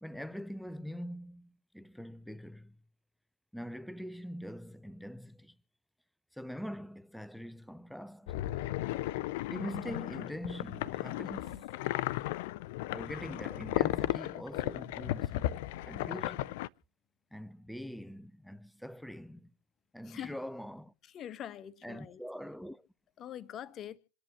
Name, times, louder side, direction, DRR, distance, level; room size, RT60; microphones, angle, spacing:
voice 1, 0.0-2.8 3.5-5.5 6.3-8.4 9.5-11.7 12.9-16.6 17.3-19.5 19.9-20.9 21.8-22.9, equal, ahead, 0.6 m, -43 dB
sound 1, 8.3-16.7, left 16 dB, 50° left, 0.6 m, -35 dB
voice 2, 20.0-20.4 21.0-22.2 23.2-24.0, left 10 dB, 30° left, 1.1 m, -44 dB
27.5 x 10.5 x 3.0 m
figure-of-eight pair, 90°, 0 cm